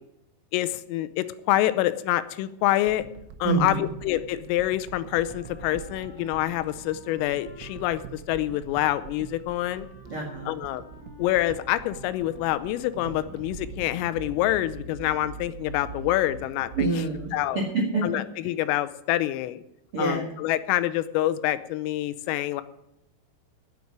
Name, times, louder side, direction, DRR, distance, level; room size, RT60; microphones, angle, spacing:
voice 1, 0.5-3.0 3.4-9.9 10.5-10.8 11.2-16.9 17.3-17.6 18.0-19.6 20.0-22.6, left 14 dB, 90° left, 14 dB, 3.3 m, -26 dB
sound 1, 2.9-15.1 15.6-15.7, right 8 dB, 85° right, 3.6 m, -45 dB
voice 2, 3.4-3.9 10.1-10.6 16.7-18.5 19.9-20.4, right 3 dB, 65° right, -1 dB, 1.3 m, -27 dB
Wind instrument woodwind instrument, 5.1-13.2, left 5 dB, 55° left, 1.4 m, -52 dB
sound 2, 13.0-17.5, right 3 dB, 50° right, 3.6 m, -41 dB
9.4 x 8.7 x 9.4 m, 0.80 s
omnidirectional pair, 5.8 m